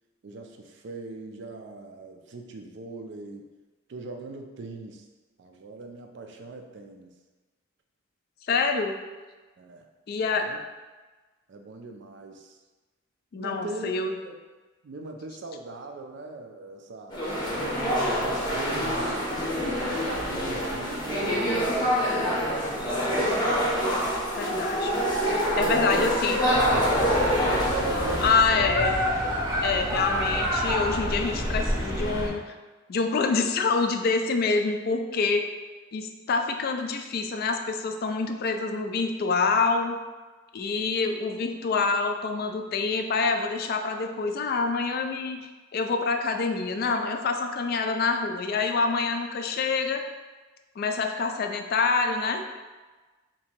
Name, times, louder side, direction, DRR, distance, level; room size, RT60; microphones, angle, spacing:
voice 1, 0.2-3.5 3.9-5.0 5.4-7.1 9.6-9.9 10.3-10.6 11.5-12.6 13.3-14.3 14.8-17.2 17.9-19.4 20.0-22.7 25.6-26.1 26.4-27.1 27.5-28.7 29.7-30.4, right 2 dB, 60° right, 4 dB, 0.4 m, -40 dB
voice 2, 8.5-9.0 10.1-10.5 13.3-14.1 24.4-24.9 25.3-26.4 28.2-29.0 29.6-32.5 32.9-35.5 35.9-40.0 40.5-50.0 50.8-52.5, left 4 dB, 50° left, 5 dB, 0.3 m, -26 dB
sound 1, 17.1-28.3, equal, 20° left, 0.7 m, -26 dB
sound 2, 26.5-32.3, equal, 15° right, 0.7 m, -28 dB
2.9 x 2.6 x 4.3 m, 1.3 s
head